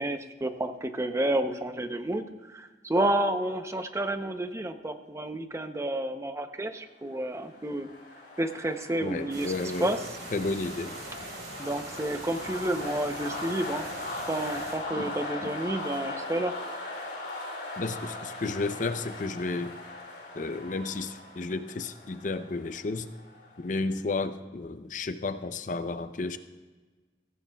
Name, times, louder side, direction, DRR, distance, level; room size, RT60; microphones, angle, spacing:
voice 1, 0.0-7.9 8.4-9.5 9.8-10.0 11.6-13.9 14.2-16.5, right 1 dB, 15° right, 8 dB, 0.7 m, -30 dB
sound 1, 7.1-23.8, left 2 dB, 70° left, 2.8 m, -40 dB
voice 2, 9.0-9.9 10.3-10.9 15.0-15.1 15.4-15.5 17.8-19.7 20.3-23.1 23.6-26.4, left 3 dB, 45° left, 10 dB, 0.6 m, -32 dB
sound 2, 9.3-14.7, right 2 dB, 85° right, 4.1 m, -43 dB
16.0 x 14.5 x 2.3 m, 1.3 s
head